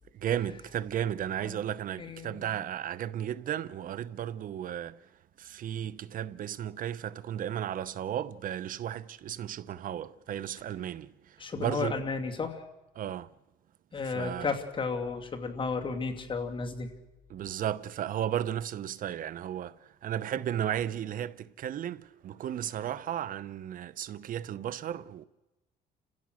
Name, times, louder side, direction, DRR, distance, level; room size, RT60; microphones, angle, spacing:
voice 1, 0.1-5.0 5.4-12.0 13.0-13.3 14.0-14.5 17.3-25.2, right 10 dB, 55° right, 0.8 m, -34 dB
voice 2, 2.0-2.5 11.4-12.7 13.9-16.9, left 4 dB, 30° left, 2.6 m, -33 dB
30.0 x 16.0 x 6.4 m
cardioid pair, 110°, 17 cm